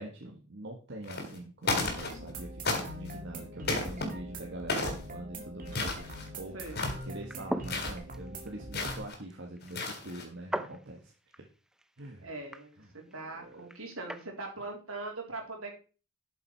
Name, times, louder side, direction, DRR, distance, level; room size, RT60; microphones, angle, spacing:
voice 1, 0.0-6.6 7.0-11.5 12.0-12.3 12.8-13.7, right 1 dB, 55° right, 1 dB, 1.8 m, -44 dB
sound 1, 1.0-1.4 1.6-2.3 2.6-3.1 3.6-4.1 4.7-5.0 5.7-6.3 6.6-7.1 7.6-8.0 8.7-9.1 9.6-10.2, left 3 dB, 50° left, 3.5 m, -33 dB
sound 2, 1.7-9.1, right 1 dB, 40° right, 2.1 m, -43 dB
sound 3, 7.1-14.3, equal, 5° right, 0.7 m, -42 dB
voice 2, 12.2-15.8, right 2 dB, 75° right, 1 dB, 3.8 m, -41 dB
12.0 x 7.3 x 4.6 m, 0.36 s
head